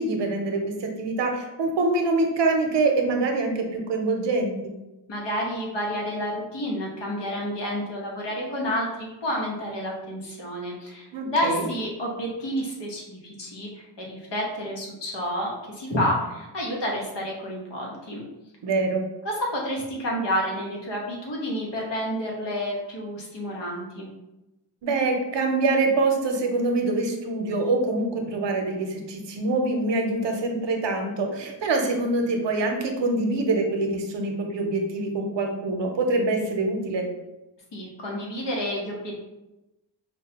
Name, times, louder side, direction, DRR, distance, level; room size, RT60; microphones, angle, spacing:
voice 1, 0.0-4.7 11.1-11.7 18.6-19.0 24.8-37.1, right 2 dB, 80° right, 3 dB, 0.7 m, -25 dB
voice 2, 5.1-18.2 19.2-24.1 37.7-39.2, equal, 75° left, -2 dB, 1.1 m, -30 dB
4.7 x 2.2 x 2.8 m, 0.98 s
wide cardioid pair, 90°, 43 cm